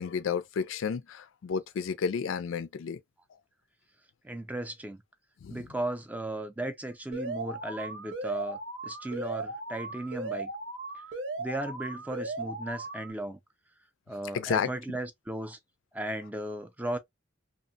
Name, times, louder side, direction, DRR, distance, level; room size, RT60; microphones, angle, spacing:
voice 1, 0.0-3.0 5.4-5.6 14.3-14.7, left 6 dB, 85° left, 0.4 m, -31 dB
voice 2, 4.2-5.0 5.5-10.5 11.4-13.4 14.1-15.6 15.9-17.0, right 1 dB, 10° right, 0.4 m, -36 dB
Alarm, 7.1-13.1, right 2 dB, 65° right, 0.9 m, -37 dB
2.8 x 2.1 x 2.6 m
head